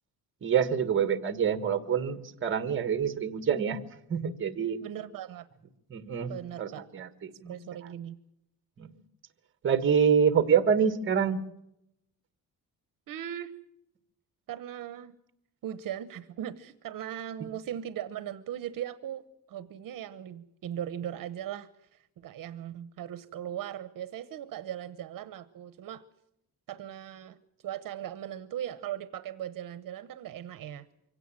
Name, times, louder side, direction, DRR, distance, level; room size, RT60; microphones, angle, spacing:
voice 1, 0.4-4.8 5.9-6.3 6.6-7.5 8.8-8.9 9.6-11.4, right 7 dB, 35° right, 11 dB, 1.5 m, -26 dB
voice 2, 4.8-5.5 6.3-6.9 7.5-8.2 13.1-13.5 14.5-15.1 15.6-26.0 26.7-27.4 27.6-30.9, right 10 dB, 65° right, 13 dB, 0.9 m, -39 dB
24.5 x 17.0 x 7.5 m, 0.83 s
cardioid pair, 170°, 36 cm